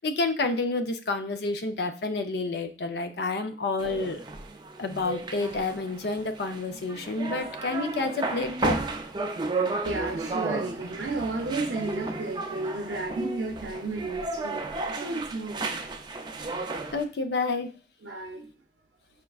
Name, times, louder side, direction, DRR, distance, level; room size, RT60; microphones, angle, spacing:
voice 1, 0.0-4.2 4.8-8.8 16.9-17.7, left 3 dB, 65° left, 7 dB, 0.5 m, -29 dB
sound 1, 3.8-17.0, right 3 dB, 25° right, 0.4 m, -33 dB
voice 2, 9.9-15.9 18.0-18.5, right 2 dB, 80° right, 2 dB, 0.5 m, -33 dB
5.0 x 3.4 x 2.3 m, 0.38 s
head